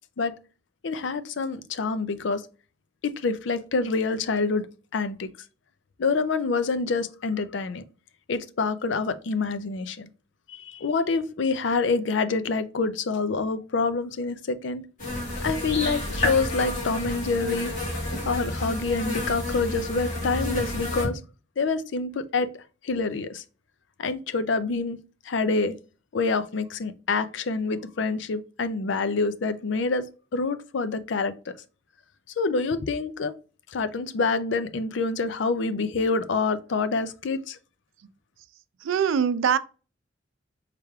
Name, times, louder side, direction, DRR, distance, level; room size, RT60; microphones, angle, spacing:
voice 1, 0.8-2.4 3.0-4.7 4.9-5.3 6.0-7.8 8.3-10.1 10.5-14.8 15.4-17.7 18.2-21.2 21.6-22.5 22.8-23.4 24.0-25.0 25.3-25.8 26.1-30.1 30.3-31.5 32.4-33.3 33.7-37.6, left 4 dB, 70° left, 0.5 m, -26 dB
sound 1, 15.0-21.0, left 1 dB, 40° left, 2.1 m, -30 dB
voice 2, 38.8-39.6, right 7 dB, 90° right, 0.4 m, -22 dB
4.8 x 3.3 x 2.3 m
head